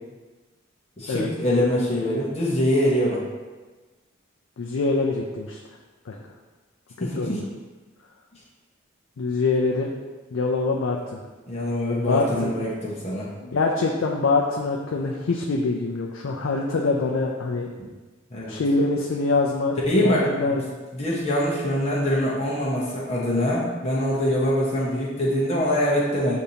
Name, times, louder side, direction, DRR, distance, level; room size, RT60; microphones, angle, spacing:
voice 1, 1.0-3.2 7.0-7.4 11.5-13.3 18.3-18.5 19.9-20.6 20.9-26.4, left 1 dB, 30° left, -6 dB, 0.8 m, -23 dB
voice 2, 4.6-5.6 6.1-6.2 7.0-7.4 9.2-9.9 10.3-11.2 12.0-12.5 13.4-17.7 18.5-20.7, left 3 dB, 75° left, -1 dB, 0.4 m, -24 dB
6.6 x 2.6 x 2.8 m, 1.3 s
head